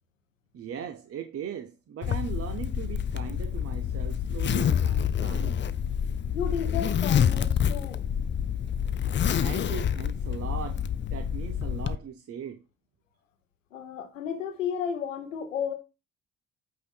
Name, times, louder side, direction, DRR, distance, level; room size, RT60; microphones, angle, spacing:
voice 1, 0.5-5.6 9.3-12.6, right 8 dB, 40° right, 0.7 m, -39 dB
Zipper (clothing), 2.0-12.0, left 8 dB, 30° left, 0.5 m, -27 dB
voice 2, 6.3-8.0 13.7-15.7, left 7 dB, 85° left, 0.9 m, -33 dB
8.3 x 2.9 x 4.3 m
figure-of-eight pair, 45°, 37 cm